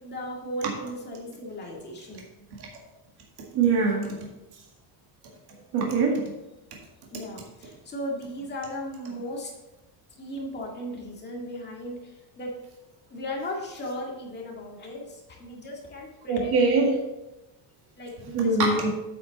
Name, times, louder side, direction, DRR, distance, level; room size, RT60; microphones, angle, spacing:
voice 1, 0.0-2.2 7.1-9.5 10.1-12.6 13.1-16.5 18.0-18.9, left 1 dB, 20° left, -2 dB, 1.9 m, -36 dB
voice 2, 3.5-4.2 5.7-6.2 16.3-17.0 18.3-18.9, right 3 dB, 50° right, -1 dB, 1.9 m, -22 dB
8.4 x 8.3 x 3.9 m, 1.0 s
cardioid pair, 170°, 49 cm